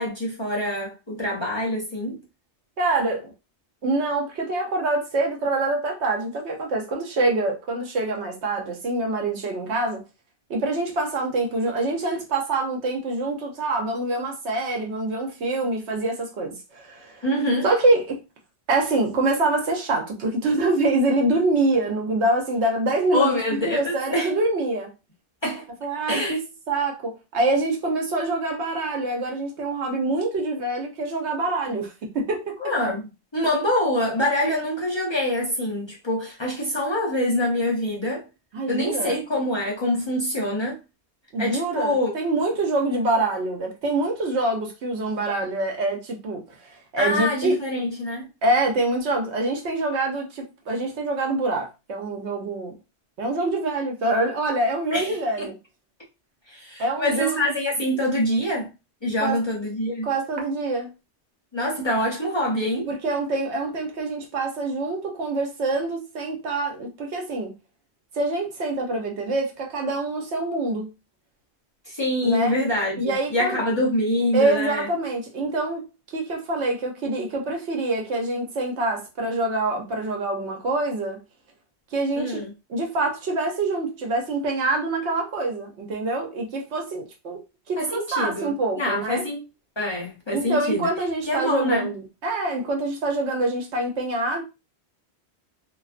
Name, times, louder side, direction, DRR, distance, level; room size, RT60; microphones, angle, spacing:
voice 1, 0.0-2.2 17.2-17.7 23.1-24.3 25.4-25.7 26.1-26.4 32.6-38.3 38.7-40.8 41.4-42.1 47.0-48.3 54.9-55.5 56.5-58.7 59.0-60.1 61.5-62.9 71.8-74.9 82.2-82.5 87.8-89.4 89.8-90.9 91.2-91.9, left 1 dB, 30° left, 0.6 m, -25 dB
voice 2, 2.8-3.3 3.8-10.0 10.5-17.2 17.6-18.2 18.7-24.9 25.8-32.6 38.5-39.1 41.3-47.6 48.4-52.7 53.2-55.5 56.8-57.3 59.2-59.4 60.0-60.9 62.9-67.5 68.1-70.9 72.2-72.6 73.0-73.6 74.3-75.8 76.1-81.2 81.9-82.4 82.7-87.4 87.7-89.2 90.3-94.4, right 2 dB, 85° right, 1.0 m, -25 dB
2.3 x 2.3 x 2.4 m
omnidirectional pair, 1.1 m